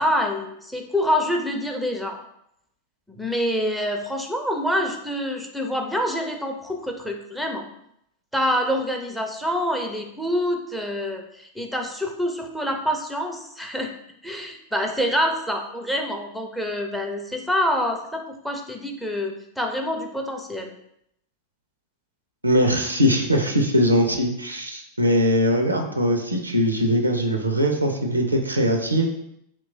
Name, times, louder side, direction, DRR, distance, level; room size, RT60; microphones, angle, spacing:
voice 1, 0.0-2.2 3.1-7.6 8.3-13.9 14.2-20.7, equal, ahead, 3 dB, 0.4 m, -26 dB
voice 2, 22.4-29.1, equal, 80° right, 3 dB, 0.4 m, -21 dB
2.9 x 2.2 x 3.8 m, 0.76 s
figure-of-eight pair, 90°, 0 cm